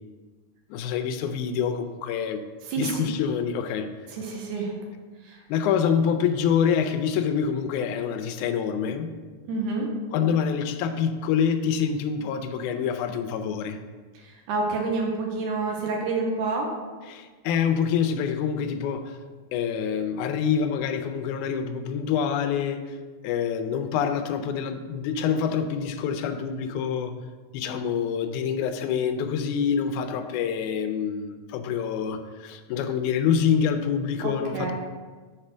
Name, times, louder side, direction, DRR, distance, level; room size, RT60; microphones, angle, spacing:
voice 1, 0.7-2.4 2.8-3.9 5.5-9.1 10.1-13.8 17.1-19.2 19.5-23.0 23.2-27.1 27.5-34.7, left 7 dB, 85° left, 8 dB, 2.0 m, -26 dB
voice 2, 2.6-3.1 4.1-4.8 5.2-5.4 9.5-9.9 14.1-16.7 34.2-34.7, right 3 dB, 85° right, 0 dB, 2.4 m, -28 dB
6.0 x 4.4 x 6.1 m, 1.4 s
omnidirectional pair, 3.4 m